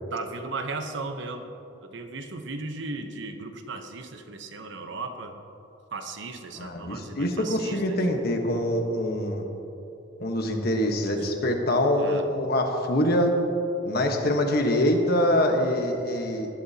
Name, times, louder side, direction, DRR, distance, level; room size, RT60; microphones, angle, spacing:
voice 1, 0.1-1.5 1.8-5.4 5.9-8.1 11.2-11.3 12.0-12.2, right 3 dB, 60° right, 6 dB, 0.9 m, -36 dB
voice 2, 6.6-9.4 10.2-13.3 13.8-16.5, left 1 dB, 50° left, 3 dB, 1.3 m, -24 dB
19.5 x 11.5 x 2.9 m, 2.9 s
head